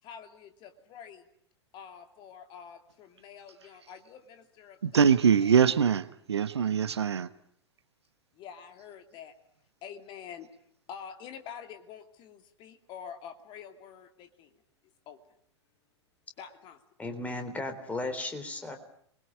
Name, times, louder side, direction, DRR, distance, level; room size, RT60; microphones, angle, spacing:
voice 1, 0.0-1.3 1.7-5.1 5.4-5.8 8.3-9.3 9.8-10.5 10.9-14.5 15.1-15.2 16.4-16.8, left 7 dB, 30° left, 7 dB, 2.7 m, -47 dB
voice 2, 4.8-7.3, right 7 dB, 65° right, 15 dB, 1.1 m, -23 dB
voice 3, 17.0-18.8, left 2 dB, 10° left, 6 dB, 3.8 m, -35 dB
26.5 x 22.0 x 8.6 m, 0.67 s
figure-of-eight pair, 100°, 15 cm